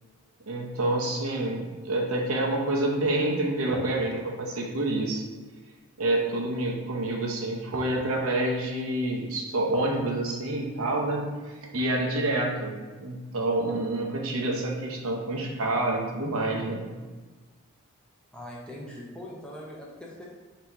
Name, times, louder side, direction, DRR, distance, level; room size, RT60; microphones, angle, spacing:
voice 1, 0.5-5.2 6.0-16.9, right 2 dB, 75° right, 0 dB, 0.8 m, -28 dB
voice 2, 18.3-20.2, left 1 dB, 5° left, -4 dB, 0.6 m, -41 dB
4.0 x 2.9 x 4.5 m, 1.3 s
head